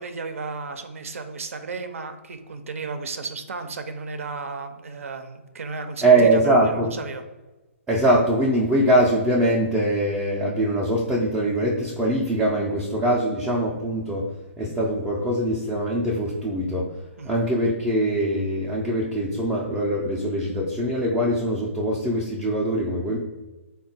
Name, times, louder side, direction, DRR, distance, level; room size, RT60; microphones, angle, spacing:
voice 1, 0.0-7.2 17.2-17.3, right 4 dB, 80° right, 8 dB, 0.5 m, -34 dB
voice 2, 6.0-6.9 7.9-14.3 14.6-17.0 17.2-23.2, right 1 dB, 5° right, -4 dB, 0.3 m, -22 dB
3.6 x 2.2 x 3.9 m, 1.1 s
hypercardioid pair, 160°, 7 cm